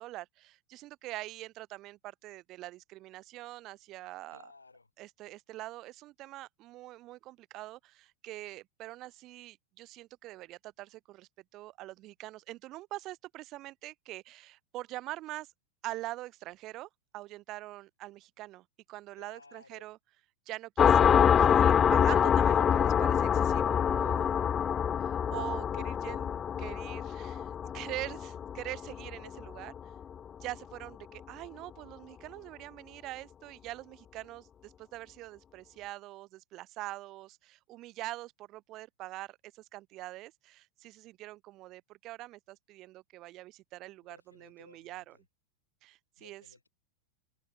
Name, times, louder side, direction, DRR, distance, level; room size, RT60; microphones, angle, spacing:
voice 1, 0.0-4.5 5.0-15.5 15.8-20.0 20.5-24.3 25.3-27.5 27.7-29.7 30.4-45.2 45.8-46.4, right 17 dB, 35° right, 0.7 m, -44 dB
voice 2, 4.3-4.9 19.2-19.9 24.0-24.8 44.0-45.2 46.2-46.7, left 3 dB, 80° left, 5.8 m, -58 dB
sound 1, 20.8-30.0, left 8 dB, 25° left, 0.3 m, -26 dB
figure-of-eight pair, 90°, 0 cm